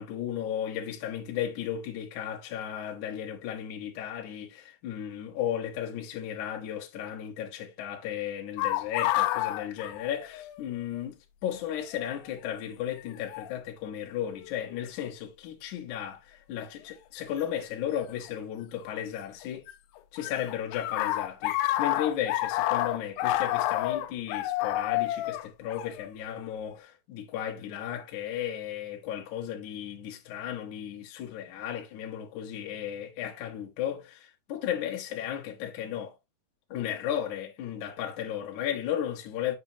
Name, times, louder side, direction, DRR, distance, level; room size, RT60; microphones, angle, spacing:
voice 1, 0.0-19.7 20.1-36.1 36.7-39.6, left 10 dB, 65° left, 2.1 m, -35 dB
sound 1, 8.6-10.7 10.9-11.0 12.0-12.3 13.3-13.5 14.3-14.7 17.4-17.5 18.8-19.7 20.0-26.5, left 15 dB, 85° left, 2.7 m, -29 dB
7.2 x 6.0 x 2.7 m
omnidirectional pair, 4.7 m